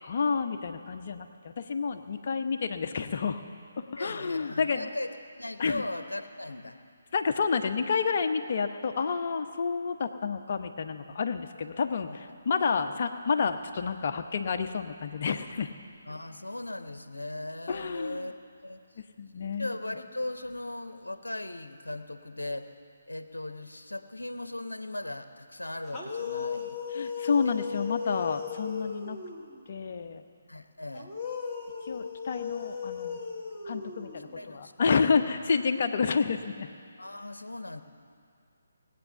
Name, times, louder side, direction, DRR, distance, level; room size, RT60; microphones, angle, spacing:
voice 1, 0.0-3.4 3.8-4.9 5.6-5.8 7.1-15.7 17.7-18.3 19.2-19.7 26.9-29.2 29.7-30.2 31.8-33.2 33.6-36.7, left 5 dB, 40° left, 6 dB, 0.9 m, -29 dB
voice 2, 4.0-5.1 5.4-6.8 11.6-11.7 12.1-12.2 12.8-13.0 16.0-18.3 18.6-18.8 19.2-22.7 23.1-26.8 27.4-27.6 30.5-31.1 34.4-34.7 35.2-35.4 37.0-37.8, left 1 dB, 75° left, 9 dB, 0.9 m, -38 dB
sound 1, 25.9-29.6 30.9-34.5, left 6 dB, ahead, 2.0 m, -36 dB
19.5 x 8.5 x 6.8 m, 2.3 s
figure-of-eight pair, 145°, 0 cm